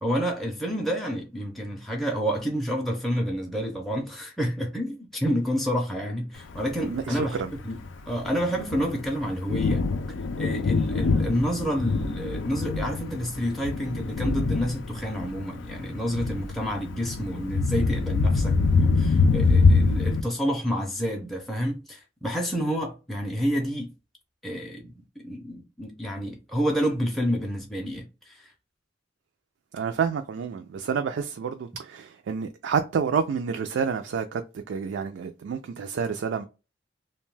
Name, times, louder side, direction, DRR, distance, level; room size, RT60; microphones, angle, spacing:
voice 1, 0.0-7.8 8.1-9.8 10.4-23.9 24.4-24.9 25.2-28.5, equal, ahead, 0.4 m, -29 dB
Thunder, 6.6-20.2, left 4 dB, 90° left, 0.4 m, -25 dB
voice 2, 6.8-7.5 29.7-34.4 34.7-36.4, right 6 dB, 70° right, 0.3 m, -29 dB
2.6 x 2.2 x 3.1 m
head